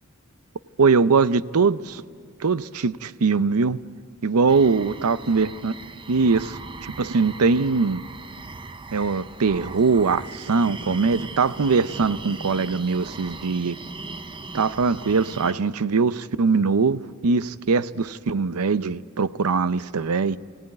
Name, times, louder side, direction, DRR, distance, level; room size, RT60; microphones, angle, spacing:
voice 1, 0.8-2.0 2.4-3.8 4.2-5.7 6.1-8.0 8.9-13.8 14.5-20.4, right 4 dB, 75° right, 15 dB, 0.6 m, -22 dB
sound 1, 4.5-15.5, right 3 dB, 20° right, 0.7 m, -39 dB
23.0 x 17.5 x 9.6 m, 2.1 s
head